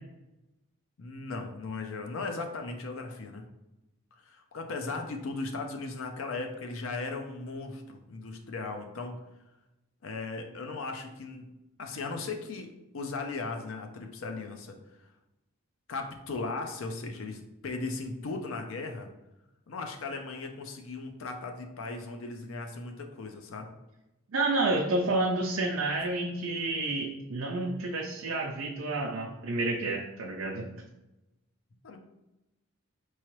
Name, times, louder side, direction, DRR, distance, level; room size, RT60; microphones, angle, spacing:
voice 1, 1.0-3.4 4.2-9.1 10.0-11.5 11.8-14.8 15.9-19.1 19.7-23.7 31.8-32.0, left 3 dB, 65° left, 4 dB, 0.5 m, -37 dB
voice 2, 24.3-30.7, right 2 dB, 65° right, -1 dB, 0.5 m, -30 dB
4.7 x 3.1 x 3.0 m, 0.95 s
head